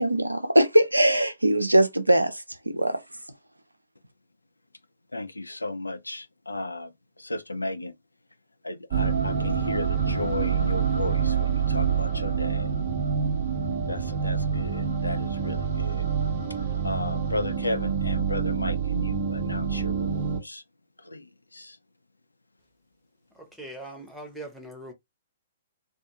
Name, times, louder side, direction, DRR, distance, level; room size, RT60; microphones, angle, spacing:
voice 1, 0.0-3.0, right 1 dB, 85° right, 0.5 m, -21 dB
voice 2, 5.1-6.9 7.2-8.0 8.6-12.7 13.9-16.1 16.5-20.6 21.0-21.8, left 2 dB, 80° left, 0.4 m, -34 dB
sound 1, 8.9-20.4, right 6 dB, 40° right, 0.6 m, -27 dB
voice 3, 23.4-24.9, right 1 dB, ahead, 0.8 m, -41 dB
2.5 x 2.3 x 2.7 m
figure-of-eight pair, 115°, 0 cm